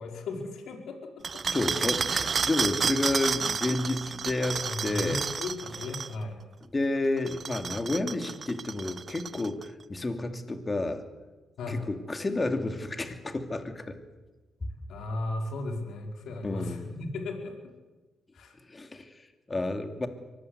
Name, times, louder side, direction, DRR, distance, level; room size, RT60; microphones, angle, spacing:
voice 1, 0.0-1.4 1.8-2.0 4.6-6.5 11.6-11.8 14.7-17.6 18.3-18.6, left 2 dB, 70° left, 3 dB, 4.8 m, -36 dB
sound 1, 1.2-6.1 7.2-9.6, right 5 dB, 40° right, 0.7 m, -31 dB
voice 2, 1.5-5.2 6.7-11.0 11.7-14.0 14.6-14.7 16.4-16.8 18.7-20.1, left 2 dB, 25° left, 7 dB, 2.7 m, -30 dB
23.5 x 19.0 x 8.2 m, 1.2 s
cardioid pair, 90°, 0 cm